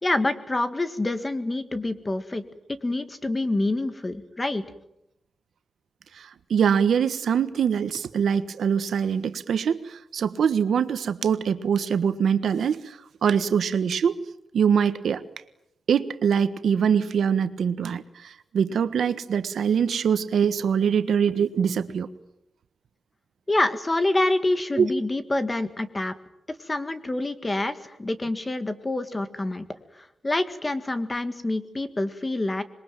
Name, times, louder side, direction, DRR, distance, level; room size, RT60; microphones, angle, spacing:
voice 1, 0.0-2.4 2.8-4.6 23.5-26.2 26.6-29.7 30.2-32.6, left 2 dB, 20° left, 10 dB, 1.8 m, -26 dB
voice 2, 6.1-14.2 14.5-15.2 15.9-22.1 24.8-24.9, right 7 dB, 85° right, 11 dB, 1.5 m, -23 dB
26.5 x 22.0 x 9.2 m, 0.81 s
wide cardioid pair, 160°, 0 cm